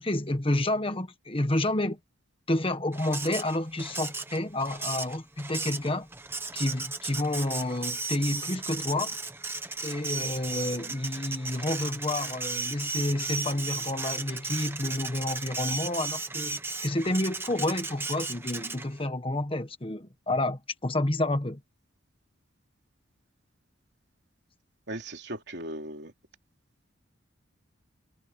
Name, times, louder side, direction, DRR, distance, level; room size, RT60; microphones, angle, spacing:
voice 1, 0.0-2.0 2.5-6.1 6.5-9.2 9.8-21.6, left 1 dB, 25° left, 1.4 m, -29 dB
Printer, 2.9-19.1, right 3 dB, 10° right, 1.2 m, -35 dB
voice 2, 24.9-26.1, right 1 dB, 60° right, 2.9 m, -37 dB
head